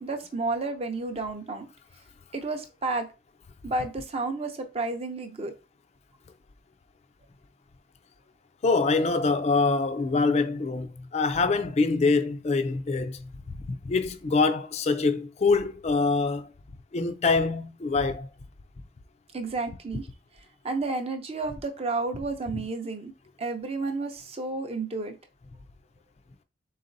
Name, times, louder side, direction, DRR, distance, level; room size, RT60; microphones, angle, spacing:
voice 1, 0.0-1.7 2.3-3.0 3.6-5.5 19.3-20.1 20.6-23.1 23.4-25.1, right 3 dB, 30° right, 0.5 m, -31 dB
voice 2, 8.6-13.3 13.6-16.5 16.9-18.3, left 4 dB, 35° left, 0.3 m, -25 dB
4.0 x 3.9 x 2.6 m
head